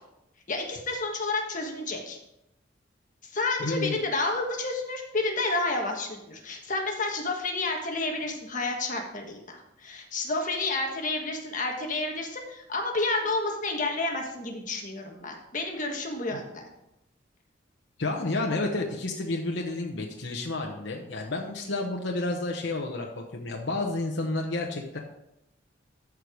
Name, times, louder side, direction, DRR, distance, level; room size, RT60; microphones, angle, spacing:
voice 1, 0.5-2.2 3.2-16.6, left 2 dB, 45° left, 2 dB, 1.5 m, -30 dB
voice 2, 3.6-4.0 16.3-16.4 18.0-25.0, left 2 dB, 70° left, 0 dB, 1.0 m, -30 dB
13.5 x 4.7 x 5.0 m, 0.86 s
head